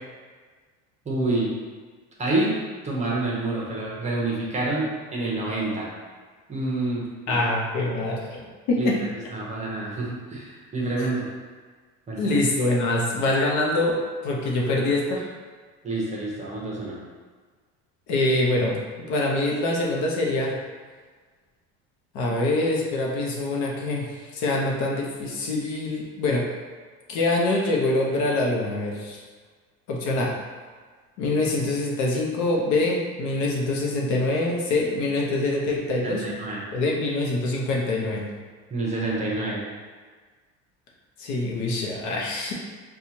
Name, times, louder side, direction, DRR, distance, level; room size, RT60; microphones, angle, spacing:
voice 1, 1.0-1.5 2.2-2.5 2.8-5.9 6.5-7.4 8.8-8.9 9.3-11.3 12.1-12.4 15.8-17.0 36.0-36.6 38.7-39.6, right 2 dB, 20° right, -5 dB, 0.8 m, -27 dB
voice 2, 7.3-9.0 11.0-11.1 12.2-15.3 18.1-20.5 22.1-26.4 27.1-29.2 29.9-30.3 31.2-36.3 36.7-38.3 41.2-42.5, left 2 dB, 60° left, -2 dB, 0.8 m, -25 dB
4.3 x 2.3 x 2.8 m, 1.5 s
cardioid pair, 130°, 32 cm